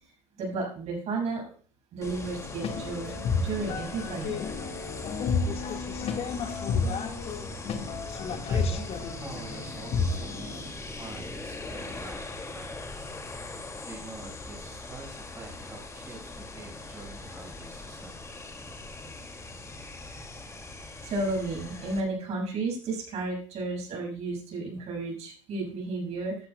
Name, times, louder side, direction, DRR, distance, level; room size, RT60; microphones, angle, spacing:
voice 1, 0.3-1.4 1.9-4.4 21.0-26.5, right 3 dB, 45° right, 0 dB, 5.9 m, -32 dB
sound 1, 2.0-22.0, left 2 dB, 20° left, 2.3 m, -40 dB
sound 2, 2.3-10.6, left 5 dB, 40° left, 1.7 m, -31 dB
voice 2, 8.5-13.5 13.8-18.2, right 2 dB, 15° right, -1 dB, 4.9 m, -46 dB
14.0 x 12.0 x 2.3 m, 0.42 s
hypercardioid pair, 75°, 16 cm